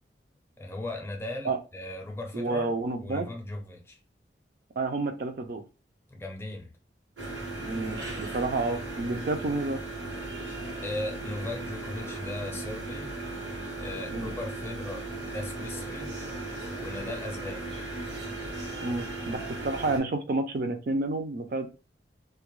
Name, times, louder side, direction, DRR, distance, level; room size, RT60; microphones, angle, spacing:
voice 1, 0.6-2.7 3.0-4.0 6.1-6.7 10.8-13.1 13.7-16.1 16.7-17.7, left 2 dB, 15° left, 0.4 m, -37 dB
voice 2, 2.3-3.3 4.8-5.6 7.6-9.8 14.1-14.3 18.8-21.7, right 3 dB, 50° right, 0.4 m, -30 dB
sound 1, 7.2-20.0, right 2 dB, 85° right, 1.0 m, -37 dB
2.2 x 2.1 x 3.0 m
head